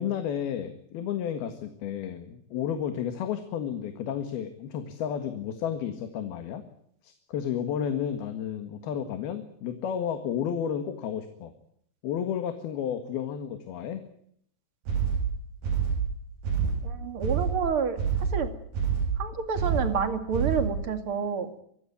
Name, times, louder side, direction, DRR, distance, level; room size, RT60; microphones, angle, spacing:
voice 1, 0.0-6.6 7.0-11.5 12.0-14.0, left 8 dB, 80° left, 8 dB, 3.6 m, -32 dB
sound 1, 14.9-20.9, right 6 dB, 85° right, 7.5 m, -28 dB
voice 2, 16.8-18.0 18.3-18.5 19.2-21.5, right 6 dB, 40° right, 9 dB, 2.7 m, -29 dB
25.0 x 16.0 x 9.5 m, 0.69 s
omnidirectional pair, 4.4 m